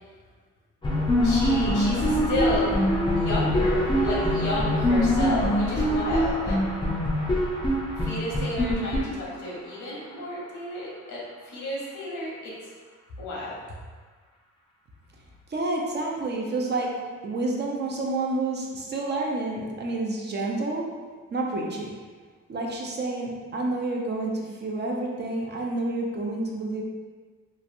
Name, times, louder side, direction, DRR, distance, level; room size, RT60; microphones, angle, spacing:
sound 1, 0.8-9.7, left 1 dB, 15° left, 0.5 m, -24 dB
voice 1, 1.2-2.7 3.1-6.6 7.9-12.5 13.2-13.6, left 2 dB, 85° left, -6 dB, 1.1 m, -32 dB
voice 2, 15.5-16.9 17.2-20.8 21.3-21.9 22.5-26.8, right 2 dB, 35° right, -1 dB, 0.5 m, -29 dB
3.0 x 2.5 x 2.6 m, 1.5 s
cardioid pair, 90°, 30 cm